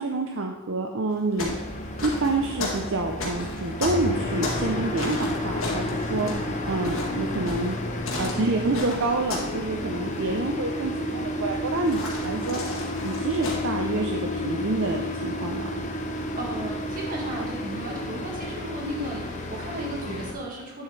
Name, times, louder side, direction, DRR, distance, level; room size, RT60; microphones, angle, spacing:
voice 1, 0.0-1.6 2.0-6.3 6.7-7.8 8.2-12.6 13.0-15.7, right 3 dB, 65° right, 2 dB, 0.6 m, -28 dB
sound 1, 1.1-4.7 5.0-9.6 9.8-10.2 11.8-13.6, left 3 dB, 70° left, 2.0 m, -34 dB
sound 2, 1.4-20.3, left 1 dB, 35° left, 0.8 m, -31 dB
sound 3, 2.8-8.3, left 1 dB, 90° left, 1.3 m, -48 dB
voice 2, 6.1-6.5 16.1-20.8, right 1 dB, 40° right, -2 dB, 1.9 m, -35 dB
9.6 x 7.2 x 3.3 m, 1.0 s
head